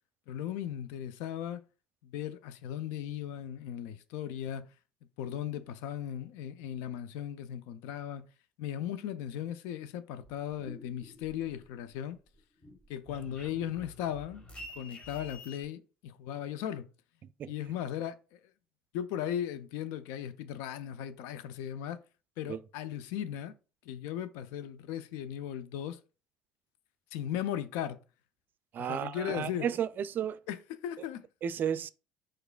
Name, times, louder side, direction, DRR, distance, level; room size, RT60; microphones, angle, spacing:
voice 1, 0.3-1.6 2.0-4.6 5.2-8.2 8.6-12.2 12.9-14.4 14.8-16.9 17.4-18.4 18.9-22.0 22.4-23.5 23.9-26.0 27.1-28.0 28.8-29.7 30.5-31.2, left 10 dB, 65° left, 0.4 m, -37 dB
sound 1, 10.2-11.9 12.3-15.6, left 1 dB, 25° left, 1.4 m, -49 dB
voice 2, 28.7-30.4 31.4-31.9, right 9 dB, 45° right, 0.4 m, -33 dB
4.8 x 4.4 x 2.3 m
hypercardioid pair, 55°, 4 cm